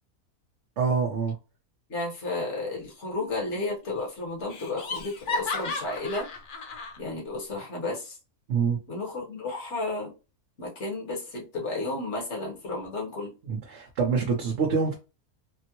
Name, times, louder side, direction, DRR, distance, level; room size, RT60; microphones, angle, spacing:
voice 1, 0.8-1.4 8.5-8.8 13.4-14.9, right 5 dB, 55° right, 1.0 m, -26 dB
voice 2, 1.9-6.3 7.0-8.2 8.9-10.1 10.6-13.3, left 2 dB, 50° left, 1.5 m, -32 dB
Laughter, 3.2-3.7 4.0-4.1 4.5-7.0, left 3 dB, 70° left, 0.4 m, -34 dB
3.7 x 2.1 x 2.9 m
omnidirectional pair, 1.6 m